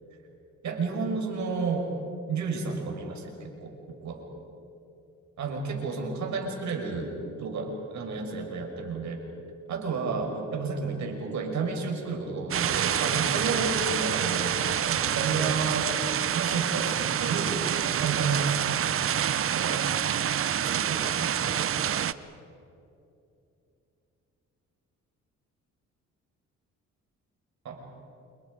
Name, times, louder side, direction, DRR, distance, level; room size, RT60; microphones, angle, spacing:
voice 1, 0.6-1.9 2.3-3.7 4.0-4.2 5.4-9.2 9.7-16.0 16.3-17.5 18.0-18.7 19.5-19.9 20.7-21.7 27.6-27.9, right 4 dB, 70° right, 2 dB, 5.5 m, -31 dB
sound 1, 12.5-22.1, right 9 dB, 45° right, 0.8 m, -27 dB
29.5 x 28.0 x 5.2 m, 2.7 s
cardioid pair, 90°, 30 cm